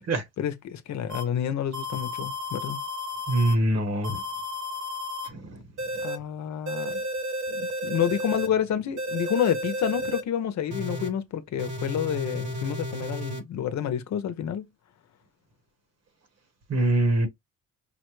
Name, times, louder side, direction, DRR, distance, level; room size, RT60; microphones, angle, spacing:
voice 1, 0.4-2.8 6.0-7.0 7.5-14.7, left 9 dB, 65° left, 0.8 m, -29 dB
sound 1, 1.1-1.2 1.7-3.5 4.0-5.3 5.8-6.2 6.7-8.5 9.0-10.2 10.7-11.1 11.6-13.4, left 1 dB, 80° right, 1.4 m, -32 dB
voice 2, 3.3-4.2 5.2-5.6 6.0-6.1 16.7-17.3, right 1 dB, 55° right, 1.4 m, -24 dB
5.5 x 2.1 x 3.1 m
cardioid pair, 90°, 30 cm